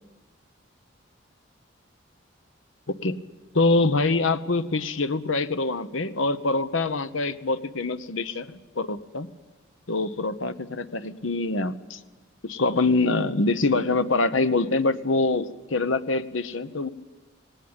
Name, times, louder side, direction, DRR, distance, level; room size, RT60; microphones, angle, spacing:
voice 1, 3.5-8.5 8.8-9.3 9.9-12.0 12.4-16.9, left 3 dB, 80° left, 12 dB, 1.0 m, -24 dB
18.5 x 18.5 x 8.9 m, 1.2 s
head